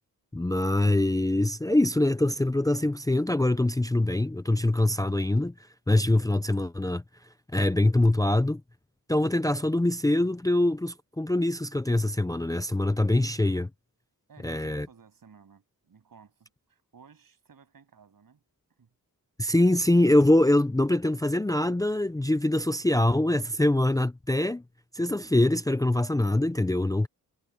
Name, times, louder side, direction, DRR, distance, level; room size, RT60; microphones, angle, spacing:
voice 1, 0.3-5.5 5.9-7.0 7.5-8.6 9.1-13.7 14.4-14.9 19.4-24.6 24.9-27.1, left 1 dB, 10° left, 0.5 m, -24 dB
voice 2, 14.3-18.4 18.8-18.9, right 6 dB, 65° right, 7.6 m, -56 dB
wide cardioid pair, 160°, 37 cm